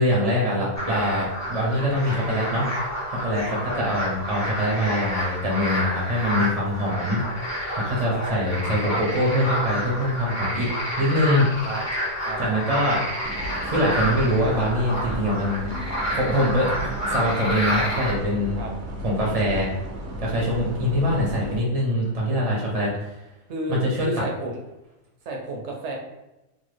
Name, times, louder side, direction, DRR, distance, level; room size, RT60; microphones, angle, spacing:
voice 1, 0.0-2.7 3.1-7.2 7.8-10.7 11.0-11.5 12.4-13.0 13.6-15.7 16.1-18.6 19.0-19.7 20.2-23.2 23.7-24.2, equal, 40° right, -3 dB, 0.5 m, -23 dB
sound 1, 0.8-18.1, equal, 20° left, 0.5 m, -29 dB
sound 2, 13.2-21.6, right 1 dB, 85° right, 1.0 m, -35 dB
voice 2, 23.5-24.6 25.3-26.0, right 1 dB, 65° right, 1 dB, 0.8 m, -32 dB
2.9 x 2.2 x 3.2 m, 0.98 s
omnidirectional pair, 1.4 m